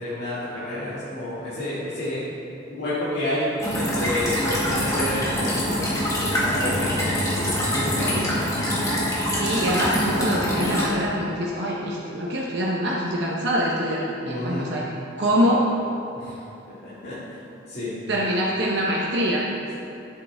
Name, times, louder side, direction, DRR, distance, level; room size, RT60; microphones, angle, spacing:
voice 1, 0.0-2.2 2.7-3.5 3.7-8.5 14.2-14.7 16.1-16.4 16.8-17.4 17.7-18.0, left 1 dB, 55° left, -13 dB, 2.3 m, -30 dB
sound 1, 3.6-10.9, equal, 15° left, 1.8 m, -24 dB
voice 2, 9.2-14.9 15.2-15.6 18.1-19.5, equal, 60° right, -5 dB, 0.9 m, -24 dB
11.5 x 7.7 x 3.5 m, 2.9 s
head